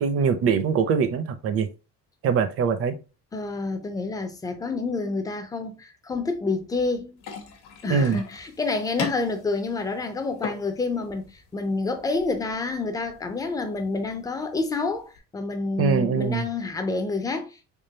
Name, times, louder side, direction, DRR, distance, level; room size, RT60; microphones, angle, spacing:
voice 1, 0.0-1.7 2.2-3.0 7.9-8.2 15.8-16.5, right 6 dB, 45° right, 0.5 m, -23 dB
voice 2, 3.3-7.2 7.8-17.6, left 3 dB, 10° left, 0.4 m, -28 dB
sound 1, 7.2-15.2, left 5 dB, 65° left, 1.1 m, -40 dB
3.7 x 3.5 x 2.7 m
cardioid pair, 175°, 33 cm